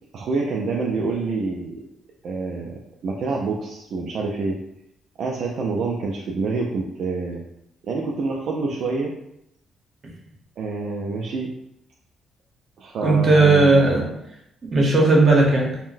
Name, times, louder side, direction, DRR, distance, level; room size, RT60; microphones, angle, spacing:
voice 1, 0.1-1.8 2.2-4.6 5.2-7.4 7.8-9.1 10.6-11.5 12.8-14.1, right 3 dB, 65° right, -1 dB, 0.4 m, -27 dB
voice 2, 13.0-14.1 14.6-15.8, right 2 dB, 45° right, -1 dB, 0.9 m, -16 dB
3.7 x 2.1 x 2.5 m, 0.81 s
cardioid pair, 90°, 0 cm